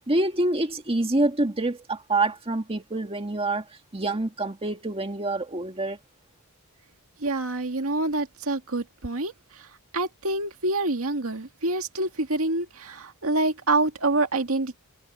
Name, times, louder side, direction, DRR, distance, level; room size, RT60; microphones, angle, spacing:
voice 1, 0.1-3.7 3.9-6.0, right 2 dB, 25° right, 1.8 m, -26 dB
voice 2, 7.2-9.7 9.9-14.8, right 2 dB, 70° right, 2.1 m, -27 dB
head